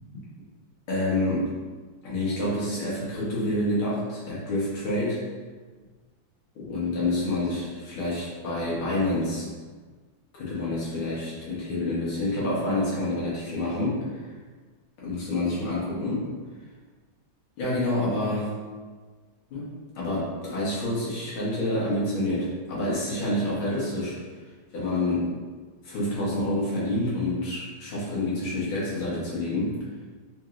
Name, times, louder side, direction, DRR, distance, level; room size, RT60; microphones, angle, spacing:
voice 1, 0.9-1.5 2.0-5.2 6.6-9.5 10.3-14.3 15.0-16.3 17.6-18.5 19.5-19.7 20.0-24.2 24.7-25.3 25.8-29.8, left 1 dB, 85° left, -7 dB, 2.0 m, -28 dB
4.4 x 2.9 x 2.5 m, 1.4 s
omnidirectional pair, 2.2 m